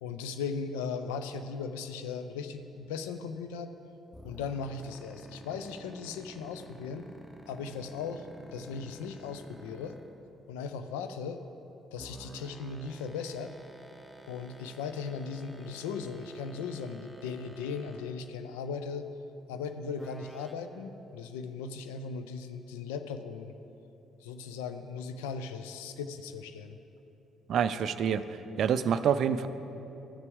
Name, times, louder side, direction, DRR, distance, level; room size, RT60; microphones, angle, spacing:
voice 1, 0.0-3.7 4.2-7.1 7.5-10.0 10.5-11.4 11.9-13.5 14.3-19.1 19.5-23.5 24.2-26.8, left 5 dB, 75° left, 9 dB, 0.4 m, -38 dB
sound 1, 4.1-10.2 12.0-18.2 20.0-20.5, right 1 dB, 5° left, 0.9 m, -50 dB
voice 2, 27.5-29.5, right 8 dB, 60° right, 12 dB, 0.3 m, -27 dB
14.0 x 6.7 x 3.6 m, 3.0 s
hypercardioid pair, 45°, 0 cm